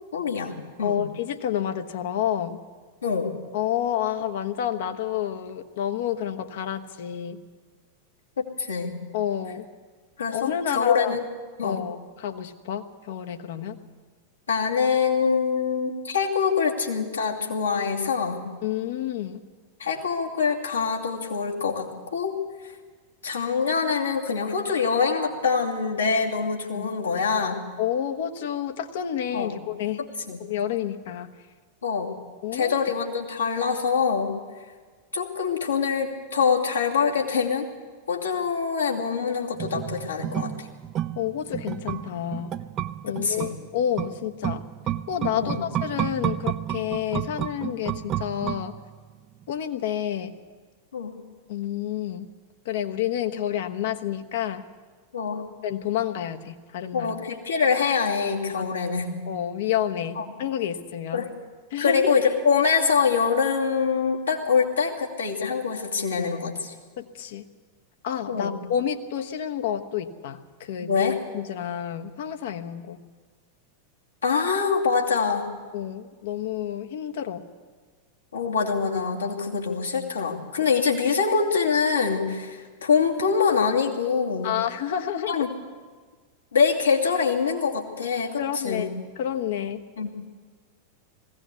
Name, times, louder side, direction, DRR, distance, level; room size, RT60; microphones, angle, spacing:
voice 1, 0.1-1.0 3.0-3.3 8.4-9.0 10.2-11.2 11.6-11.8 14.5-18.4 19.8-22.4 23.2-27.6 29.3-29.5 30.0-30.4 31.8-32.1 32.5-34.4 35.1-37.7 38.1-40.7 43.1-43.5 45.4-45.6 50.9-51.1 55.1-55.5 56.9-59.1 60.1-60.2 61.1-61.3 61.8-66.7 68.3-68.6 70.8-71.2 74.2-75.5 78.3-84.5 85.1-85.5 86.5-88.9 90.0-90.1, left 5 dB, 75° left, -1 dB, 2.6 m, -24 dB
voice 2, 0.8-2.6 3.5-7.4 9.1-9.6 10.3-11.1 11.6-13.8 18.6-19.4 26.7-26.9 27.8-30.0 30.4-31.3 32.4-32.8 41.2-42.5 43.0-44.6 45.1-48.7 49.5-50.3 51.5-52.3 52.6-54.6 55.6-57.2 58.6-58.7 59.3-61.2 61.7-62.2 67.0-67.4 68.0-71.0 71.3-73.0 75.7-77.4 84.4-85.4 88.4-88.9 89.2-89.8, left 10 dB, 55° left, 6 dB, 1.2 m, -29 dB
sound 1, 39.6-49.1 49.4-49.5, right 11 dB, 30° right, 0.6 m, -31 dB
19.5 x 16.5 x 8.3 m, 1.5 s
figure-of-eight pair, 90°, 0 cm